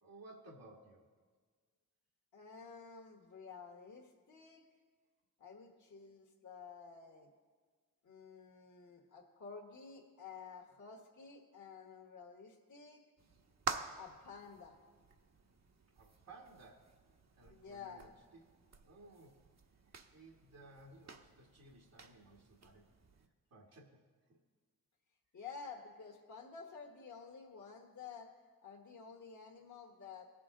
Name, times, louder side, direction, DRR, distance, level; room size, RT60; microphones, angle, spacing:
voice 1, 0.0-1.0 16.0-16.9 17.4-18.4 18.8-19.4 19.8-22.8 23.5-24.0 24.3-24.4, right 2 dB, 75° right, -2 dB, 1.7 m, -58 dB
voice 2, 2.3-4.6 5.4-7.3 8.0-13.0 14.0-14.8 17.5-18.1 25.3-28.3 28.6-30.2, left 5 dB, 55° left, 1 dB, 1.4 m, -52 dB
sound 1, 13.2-23.3, right 4 dB, 50° right, 1.0 m, -49 dB
18.0 x 6.0 x 3.8 m, 1.5 s
supercardioid pair, 40°, 36 cm